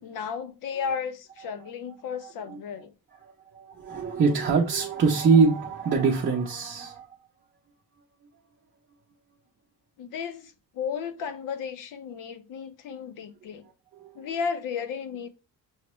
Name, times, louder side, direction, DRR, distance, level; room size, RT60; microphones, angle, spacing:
voice 1, 0.0-2.9 10.0-13.7 14.1-15.3, left 6 dB, 65° left, 0.6 m, -34 dB
voice 2, 2.2-2.6 3.2-7.2 13.9-14.4, right 4 dB, 35° right, 0.6 m, -24 dB
6.3 x 2.1 x 3.0 m
cardioid pair, 160°, 36 cm